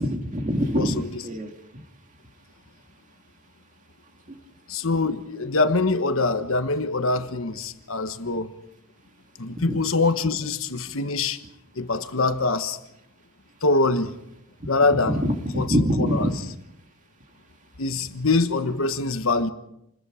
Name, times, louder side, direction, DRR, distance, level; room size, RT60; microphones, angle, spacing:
voice 1, 0.0-1.5 9.7-9.8 15.0-16.4, equal, 35° right, 2.2 m, -24 dB
voice 2, 0.8-1.1 4.7-8.5 9.4-11.4 11.7-12.8 13.6-14.1 14.7-15.2 15.5-16.3 17.8-19.5, left 3 dB, 70° left, 1.3 m, -24 dB
28.5 x 21.5 x 5.1 m
head